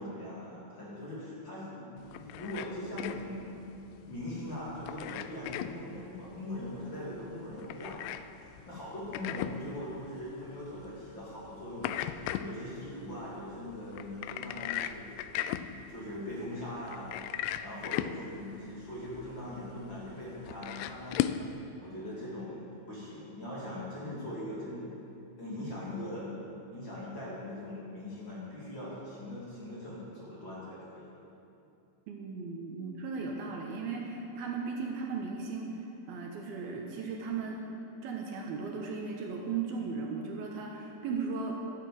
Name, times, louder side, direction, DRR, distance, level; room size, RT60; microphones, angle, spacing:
voice 1, 0.0-3.5 4.0-15.1 15.6-17.2 17.6-21.2 21.8-22.6 22.9-25.1 25.4-26.3 26.7-31.1, left 1 dB, 30° left, -7 dB, 2.9 m, -41 dB
sound 1, 2.0-21.5, left 11 dB, 90° left, 2.7 m, -39 dB
voice 2, 32.1-37.6 38.0-41.6, right 4 dB, 70° right, 0 dB, 2.8 m, -36 dB
13.0 x 10.0 x 7.7 m, 2.7 s
omnidirectional pair, 4.8 m